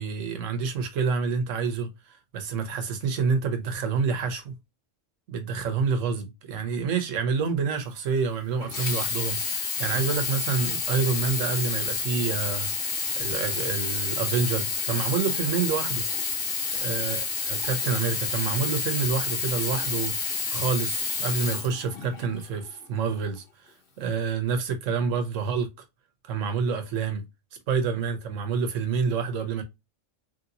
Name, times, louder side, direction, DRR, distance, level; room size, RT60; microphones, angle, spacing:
voice 1, 0.0-4.5 5.3-12.7 13.2-16.0 16.7-23.4 24.0-25.7 26.2-27.2 27.7-29.6, right 5 dB, 85° right, 1.1 m, -28 dB
Sink (filling or washing), 8.6-22.4 23.1-23.2, left 5 dB, 55° left, 1.0 m, -29 dB
3.2 x 2.8 x 2.6 m
omnidirectional pair, 1.3 m